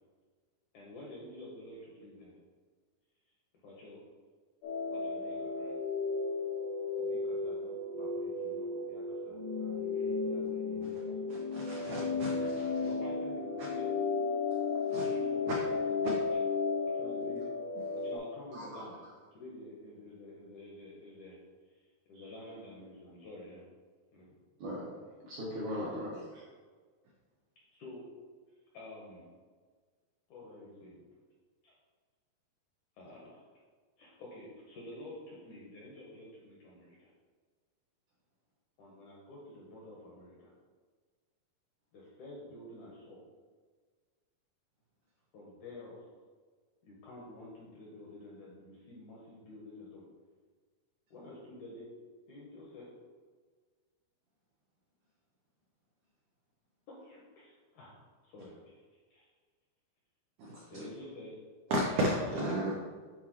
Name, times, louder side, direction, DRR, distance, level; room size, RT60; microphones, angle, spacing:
voice 1, 0.7-2.4 3.6-4.0 4.9-5.8 7.0-11.4 11.8-12.3 12.8-13.9 14.9-16.4 16.9-17.6 17.9-18.9 19.4-21.4 21.7-23.6 24.1-24.3 25.8-26.0 27.7-28.1 28.7-29.3 30.3-31.0 31.6-31.7 33.0-33.4 34.0-37.1 38.8-40.5 41.9-43.2 45.3-46.0 46.8-50.0 51.1-51.9 52.3-52.9 56.9-58.8 59.1-59.3 60.7-61.4 62.5-62.7, left 1 dB, 75° left, -4 dB, 1.9 m, -49 dB
sound 1, 4.6-18.2, left 4 dB, 90° left, 1.7 m, -34 dB
voice 2, 11.3-12.3 14.9-15.0 60.4-60.9 61.7-62.7, right 1 dB, 85° right, -2 dB, 1.7 m, -33 dB
voice 3, 18.5-19.1 22.1-22.3 24.6-26.4, equal, 70° right, -6 dB, 1.8 m, -40 dB
8.5 x 4.2 x 3.0 m, 1.5 s
omnidirectional pair, 4.5 m